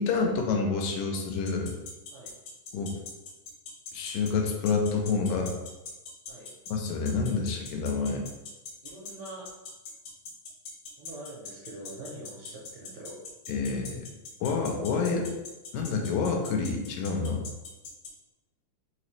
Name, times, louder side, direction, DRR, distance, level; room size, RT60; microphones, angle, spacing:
voice 1, 0.0-1.8 2.7-2.9 3.9-5.5 6.7-8.2 13.5-14.1 14.4-15.3 15.7-17.5, left 4 dB, 85° left, 2 dB, 2.3 m, -28 dB
sound 1, 1.5-18.1, left 5 dB, 70° left, 1.8 m, -41 dB
voice 2, 8.8-9.5 11.0-13.2, right 1 dB, 75° right, -4 dB, 1.7 m, -44 dB
5.1 x 2.9 x 3.2 m, 1.1 s
omnidirectional pair, 3.8 m